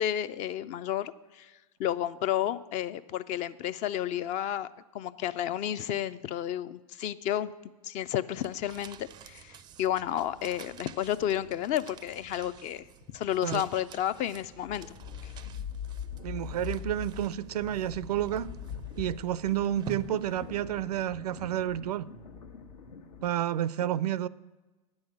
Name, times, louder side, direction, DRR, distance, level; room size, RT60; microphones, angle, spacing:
voice 1, 0.0-1.5 1.8-4.7 4.9-7.5 7.8-14.9 15.2-15.3, left 11 dB, 40° left, 0.5 m, -31 dB
sound 1, 8.4-21.0, right 9 dB, 20° right, 0.4 m, -50 dB
sound 2, 14.4-23.3, left 7 dB, 80° left, 1.3 m, -42 dB
voice 2, 16.2-18.5 19.0-22.1 23.2-24.3, right 11 dB, 80° right, 0.4 m, -30 dB
9.5 x 6.4 x 8.5 m
hypercardioid pair, 110°, 20 cm